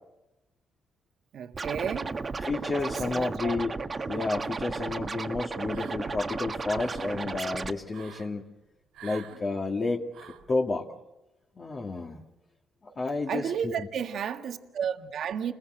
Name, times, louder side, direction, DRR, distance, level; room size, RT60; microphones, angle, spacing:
voice 1, 1.3-2.2 2.9-3.6 13.3-15.5, right 8 dB, 65° right, 1.7 m, -32 dB
Scratching (performance technique), 1.5-7.7, right 4 dB, 35° right, 1.5 m, -34 dB
voice 2, 2.4-3.7 4.1-8.4 9.0-10.9 11.6-12.2 12.8-13.8, left 3 dB, 35° left, 2.3 m, -31 dB
sound 1, 5.7-6.2 6.6-7.1 7.9-8.3 8.9-9.4 10.1-10.5, right 9 dB, 85° right, 4.1 m, -48 dB
29.5 x 21.5 x 8.0 m
cardioid pair, 90°, 0 cm